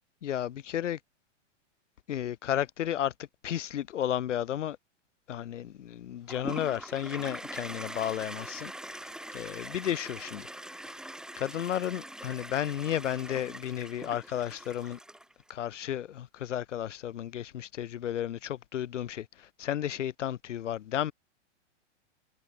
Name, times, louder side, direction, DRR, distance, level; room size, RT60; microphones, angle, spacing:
voice 1, 0.2-1.0 2.1-3.1 3.4-4.8 5.3-10.5 10.9-11.0 11.4-15.0 15.5-21.1, left 11 dB, 85° left, 2.0 m, -33 dB
Toilet flush, 6.3-15.5, right 1 dB, ahead, 2.4 m, -43 dB
hypercardioid pair, 135°, 36 cm